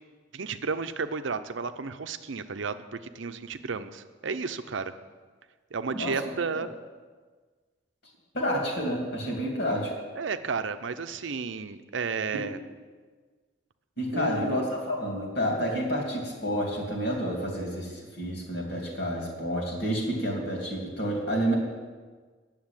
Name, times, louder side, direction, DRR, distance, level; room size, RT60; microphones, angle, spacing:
voice 1, 0.3-4.9 5.7-6.7 10.1-12.6 14.1-14.7, right 4 dB, 80° right, 10 dB, 0.6 m, -32 dB
voice 2, 8.3-9.9 12.3-12.4 14.0-21.6, equal, 60° left, -1 dB, 2.9 m, -29 dB
9.6 x 7.3 x 8.9 m, 1.4 s
head